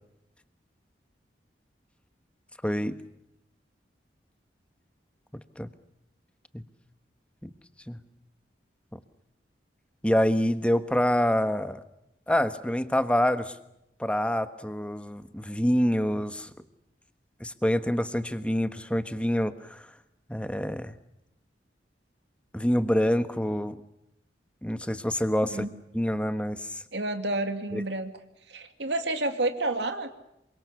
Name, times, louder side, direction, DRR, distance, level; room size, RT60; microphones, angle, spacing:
voice 1, 2.6-3.0 5.6-5.7 6.5-6.6 7.4-7.5 7.9-8.0 8.9-9.0 10.0-11.8 12.3-13.5 14.0-16.5 17.4-19.8 20.3-20.9 22.5-23.8 24.6-25.7 25.9-26.7 27.7-27.8, equal, 5° left, 10 dB, 1.3 m, -26 dB
voice 2, 26.9-28.1 28.5-30.1, right 2 dB, 80° right, 6 dB, 2.3 m, -29 dB
27.5 x 24.5 x 7.1 m, 0.83 s
head